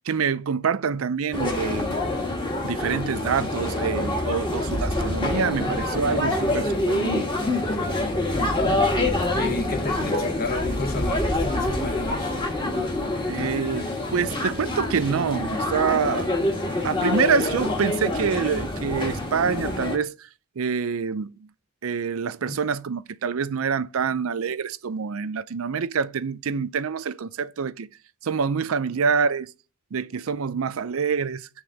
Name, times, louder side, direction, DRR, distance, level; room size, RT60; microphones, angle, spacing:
voice 1, 0.1-2.0 2.6-7.2 10.0-10.1 13.3-16.3 16.8-20.1 20.6-21.3 21.8-27.9 28.2-29.5 29.9-31.5, right 6 dB, 80° right, 0.5 m, -26 dB
sound 1, 1.3-20.0, left 1 dB, 25° left, 1.4 m, -26 dB
voice 2, 8.3-8.8 9.3-12.4 22.5-22.6, left 3 dB, 45° left, 1.0 m, -31 dB
8.7 x 3.7 x 6.4 m
head